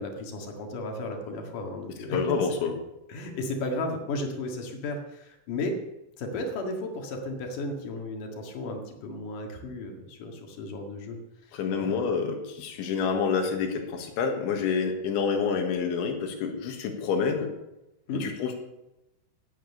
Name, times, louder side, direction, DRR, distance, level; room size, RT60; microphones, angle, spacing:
voice 1, 0.0-2.2 3.1-5.8 6.2-11.2 11.4-12.1 18.1-18.3, left 2 dB, 55° left, 3 dB, 2.8 m, -34 dB
voice 2, 2.1-2.7 11.5-17.5 18.2-18.5, left 5 dB, 75° left, 4 dB, 3.8 m, -28 dB
17.0 x 9.1 x 6.6 m, 0.94 s
omnidirectional pair, 5.7 m